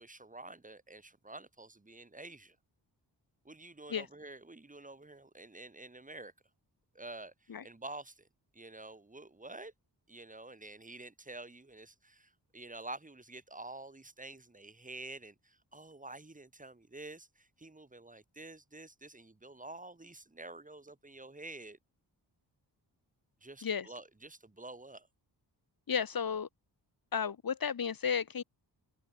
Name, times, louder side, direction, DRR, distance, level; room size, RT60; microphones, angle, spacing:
voice 1, 0.0-2.6 3.4-6.3 6.9-8.3 8.5-9.7 10.1-21.8 23.4-25.1, right 2 dB, 20° right, 1.5 m, -49 dB
voice 2, 25.9-26.5 27.1-28.4, left 7 dB, 50° left, 1.2 m, -33 dB
cardioid pair, 55°, 44 cm